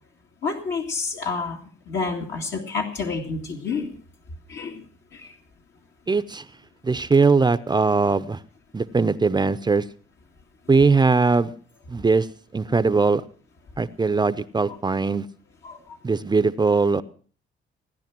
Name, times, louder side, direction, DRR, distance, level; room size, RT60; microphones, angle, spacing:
voice 1, 0.4-3.9 4.5-4.8 5.1-5.3 15.6-15.8, left 4 dB, 65° left, 0 dB, 2.3 m, -29 dB
voice 2, 6.1-6.5 6.8-8.4 8.7-9.8 10.7-11.5 11.9-12.3 12.5-13.2 13.8-15.3 16.0-17.0, right 4 dB, 20° right, 13 dB, 0.7 m, -20 dB
17.5 x 10.0 x 6.0 m, 0.43 s
cardioid pair, 90°, 20 cm